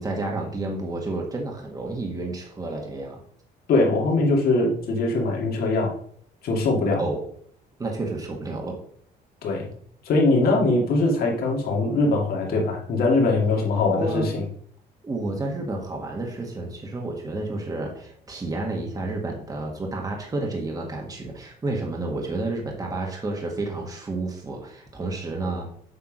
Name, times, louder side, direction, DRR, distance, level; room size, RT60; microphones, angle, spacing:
voice 1, 0.0-3.2 7.0-7.2 7.8-8.8 13.9-14.3 15.0-25.7, right 2 dB, 20° right, 0 dB, 1.5 m, -30 dB
voice 2, 3.7-5.9 6.4-7.0 9.4-9.7 10.0-14.4, left 2 dB, 65° left, 0 dB, 2.4 m, -22 dB
7.9 x 3.6 x 6.1 m, 0.62 s
cardioid pair, 110°, 17 cm